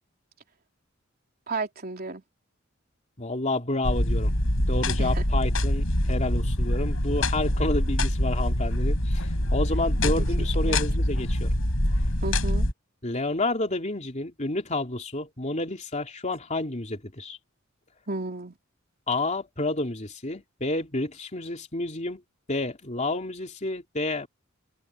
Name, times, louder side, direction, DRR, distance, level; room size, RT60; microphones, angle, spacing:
voice 1, 1.5-2.2 5.0-5.2 10.6-10.8 12.2-12.7 18.1-18.6, right 3 dB, 50° right, 3.4 m, -33 dB
voice 2, 3.2-4.3 4.7-11.5 13.0-17.4 19.1-22.2 22.5-24.3, left 2 dB, 35° left, 3.1 m, -30 dB
sound 1, 3.8-12.7, left 1 dB, 75° left, 7.4 m, -24 dB
head